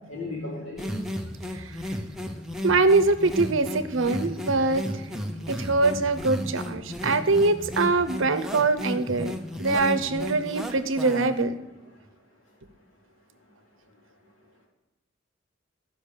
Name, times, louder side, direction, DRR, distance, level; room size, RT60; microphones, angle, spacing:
voice 1, 0.1-1.0, left 2 dB, 80° left, -3 dB, 3.7 m, -35 dB
sound 1, 0.8-11.4, left 1 dB, ahead, 0.7 m, -34 dB
voice 2, 2.6-4.8 5.5-9.3 9.6-11.5, right 3 dB, 75° right, 11 dB, 0.8 m, -23 dB
11.5 x 5.4 x 6.6 m, 1.0 s
head